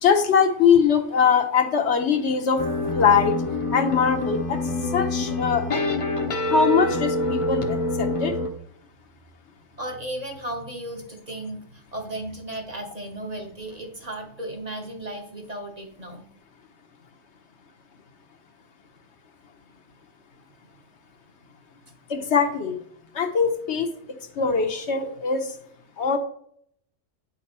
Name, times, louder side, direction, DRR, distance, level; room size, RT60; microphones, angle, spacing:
voice 1, 0.0-2.7 2.9-3.4 3.7-4.6 4.9-5.8 6.5-8.4 22.1-22.8 23.1-25.5 26.0-26.2, left 6 dB, 65° left, 6 dB, 1.0 m, -22 dB
sound 1, 2.6-8.5, left 2 dB, 35° left, 0.6 m, -26 dB
Wind instrument woodwind instrument, 2.8-6.3, right 1 dB, 50° right, 1.7 m, -46 dB
voice 2, 9.8-16.3, right 1 dB, 35° right, 2 dB, 1.0 m, -35 dB
9.0 x 5.3 x 4.3 m, 0.67 s
omnidirectional pair, 1.3 m